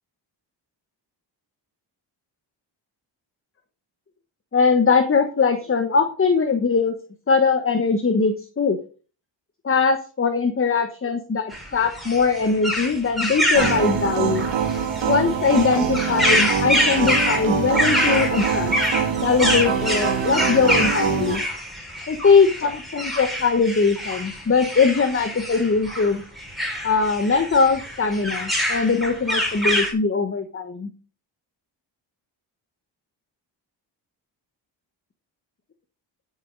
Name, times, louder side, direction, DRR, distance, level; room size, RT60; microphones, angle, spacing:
voice 1, 4.5-7.0 7.3-8.8 9.6-14.5 15.1-18.7 19.2-21.4 22.1-26.2 26.8-30.9, left 5 dB, 30° left, 7 dB, 1.2 m, -21 dB
sound 1, 11.5-29.9, equal, ahead, 5.2 m, -26 dB
sound 2, 13.5-21.4, right 7 dB, 70° right, 2.6 m, -24 dB
13.0 x 7.3 x 3.9 m, 0.38 s
cardioid pair, 80°, 46 cm